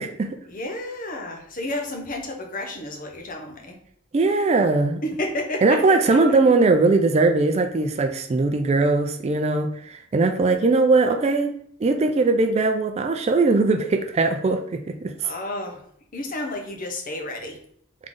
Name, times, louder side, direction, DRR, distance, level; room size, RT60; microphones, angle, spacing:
voice 1, 0.5-3.8 5.0-6.4 15.2-15.8 16.1-17.6, left 1 dB, 40° left, 2 dB, 0.8 m, -31 dB
voice 2, 4.1-5.0 5.6-11.5 11.8-15.1, right 3 dB, 30° right, 6 dB, 0.3 m, -20 dB
3.7 x 3.3 x 3.7 m, 0.64 s
head